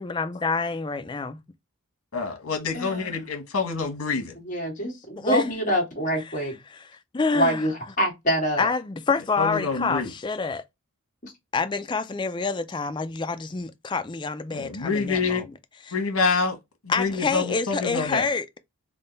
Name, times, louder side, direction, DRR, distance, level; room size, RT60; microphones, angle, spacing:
voice 1, 0.0-1.4 5.2-5.5 6.2-6.3 6.7-7.7 8.6-10.6 11.5-16.0 16.9-18.6, left 4 dB, 20° left, 0.3 m, -27 dB
voice 2, 2.1-4.3 9.4-10.1 14.5-15.4 15.9-16.5 17.0-18.3, left 4 dB, 80° left, 1.2 m, -26 dB
voice 3, 2.7-3.2 4.3-6.5 7.3-8.7 11.2-11.3, equal, 35° left, 1.6 m, -26 dB
3.7 x 2.2 x 3.8 m
head